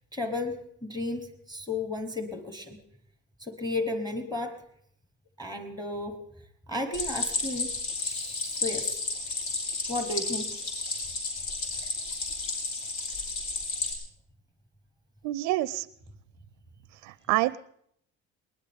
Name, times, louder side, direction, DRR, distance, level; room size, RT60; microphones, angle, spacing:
voice 1, 0.1-2.8 3.4-4.5 5.4-6.2 6.7-7.7 8.0-9.0 9.9-10.5, left 2 dB, 10° left, 7 dB, 1.0 m, -33 dB
Stream, 6.9-13.9, left 3 dB, 85° left, 5.3 m, -32 dB
voice 2, 15.2-15.9 16.9-17.6, right 17 dB, 85° right, 17 dB, 0.5 m, -27 dB
20.5 x 20.0 x 3.5 m, 0.70 s
cardioid pair, 165°, 29 cm